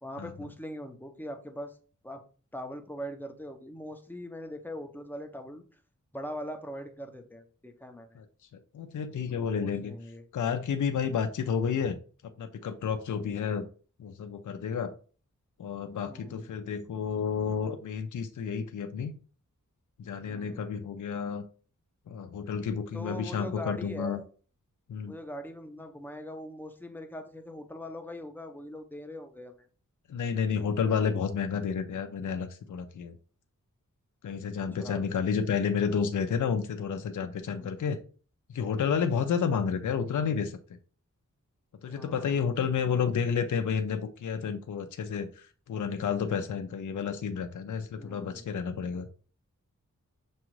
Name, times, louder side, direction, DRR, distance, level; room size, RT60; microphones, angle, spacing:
voice 1, 0.0-1.8 2.0-2.2 2.5-5.6 6.1-8.2 9.3-10.2 16.0-16.5 20.2-20.7 22.9-24.3 25.1-29.7 34.7-35.0 37.5-37.8 41.8-42.4 47.9-48.4, equal, 5° left, 5 dB, 0.6 m, -41 dB
voice 2, 8.7-9.9 10.3-12.0 12.2-13.7 14.0-14.9 15.6-19.1 20.0-21.4 22.1-24.2 24.9-25.1 30.1-33.1 34.2-38.0 38.5-40.6 41.8-49.1, left 6 dB, 70° left, 7 dB, 0.5 m, -30 dB
6.1 x 2.4 x 3.1 m, 0.39 s
wide cardioid pair, 85°, 32 cm